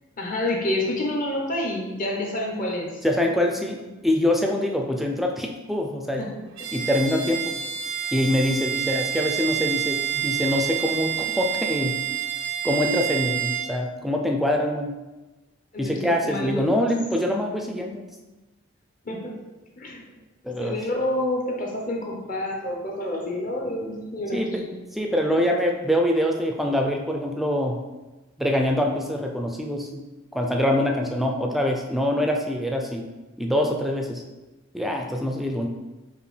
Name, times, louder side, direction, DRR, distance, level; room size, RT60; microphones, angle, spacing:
voice 1, 0.2-3.0 3.5-3.8 6.2-6.4 15.7-16.9 19.0-19.3 19.8-20.1 20.6-24.7, left 1 dB, 45° left, 0 dB, 0.7 m, -28 dB
voice 2, 3.0-6.3 6.7-7.5 8.1-12.0 12.6-15.0 15.8-18.0 20.4-20.8 24.3-24.6 25.0-27.8 28.4-30.1 30.3-33.1 33.4-34.2 34.7-35.7, left 1 dB, ahead, 2 dB, 0.3 m, -24 dB
Bowed string instrument, 6.6-13.7, right 10 dB, 75° right, 0.5 m, -28 dB
5.0 x 2.5 x 3.2 m, 1.1 s
head